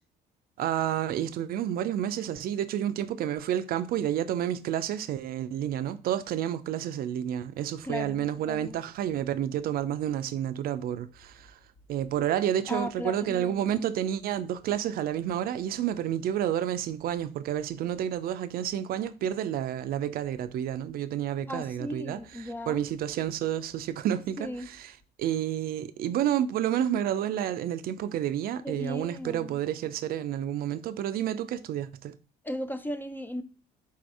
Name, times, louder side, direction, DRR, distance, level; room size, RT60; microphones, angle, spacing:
voice 1, 0.6-11.6 11.9-24.9 25.2-32.1, right 10 dB, 60° right, 0.4 m, -30 dB
voice 2, 7.8-8.8 12.7-13.7 21.5-22.8 24.4-24.7 28.6-29.6 32.4-33.4, left 1 dB, 10° left, 0.4 m, -36 dB
4.2 x 2.6 x 4.6 m
cardioid pair, 110°, 17 cm